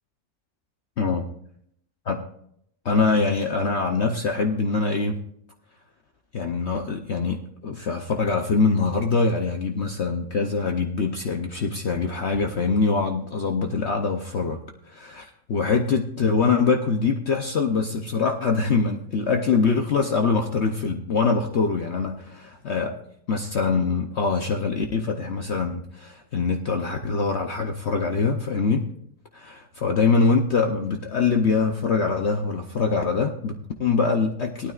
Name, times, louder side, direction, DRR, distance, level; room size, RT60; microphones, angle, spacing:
voice 1, 2.8-5.2 6.3-22.9 23.3-28.9 29.3-34.7, left 4 dB, 55° left, 4 dB, 0.9 m, -24 dB
18.0 x 12.5 x 2.4 m, 0.71 s
omnidirectional pair, 1.6 m